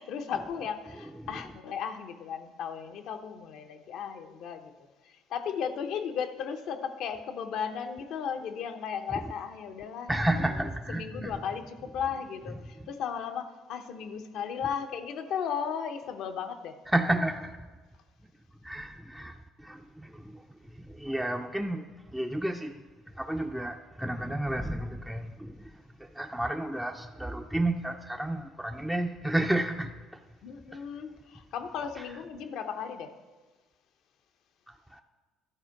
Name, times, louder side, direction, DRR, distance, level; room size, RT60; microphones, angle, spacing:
voice 1, 0.0-4.7 5.0-10.2 10.9-16.8 30.4-33.2, left 7 dB, 70° left, 0.8 m, -35 dB
voice 2, 10.1-11.3 16.9-17.7 18.6-30.2 30.7-30.8 32.0-32.1 34.7-35.0, right 1 dB, 5° right, 0.5 m, -32 dB
12.0 x 4.3 x 5.9 m
supercardioid pair, 75°, 0 cm